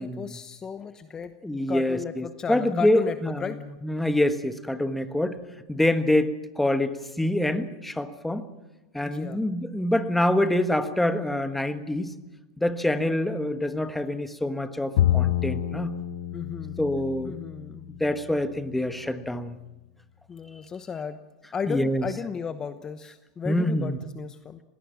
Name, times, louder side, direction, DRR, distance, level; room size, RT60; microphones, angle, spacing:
voice 1, 0.0-1.3 1.7-3.6 9.0-9.4 16.3-16.8 17.2-17.9 20.3-21.2 21.5-24.6, left 6 dB, 20° left, 10 dB, 1.0 m, -34 dB
voice 2, 1.4-3.4 3.8-5.4 5.7-8.5 8.9-12.1 12.6-15.9 16.8-17.4 18.0-19.6 21.7-22.0 23.4-24.0, left 1 dB, 5° left, 10 dB, 1.4 m, -26 dB
Bowed string instrument, 15.0-18.4, left 12 dB, 70° left, 0.8 m, -28 dB
20.0 x 18.0 x 7.3 m, 1.0 s
hypercardioid pair, 115°, 3 cm